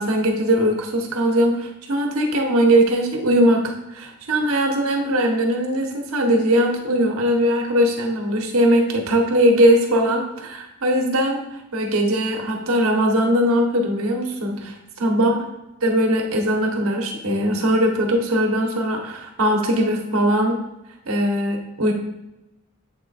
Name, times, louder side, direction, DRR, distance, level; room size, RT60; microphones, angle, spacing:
voice 1, 0.0-11.4 11.7-15.4 15.8-20.6 21.1-21.9, equal, 80° right, 2 dB, 1.0 m, -20 dB
7.5 x 3.3 x 4.0 m, 0.96 s
head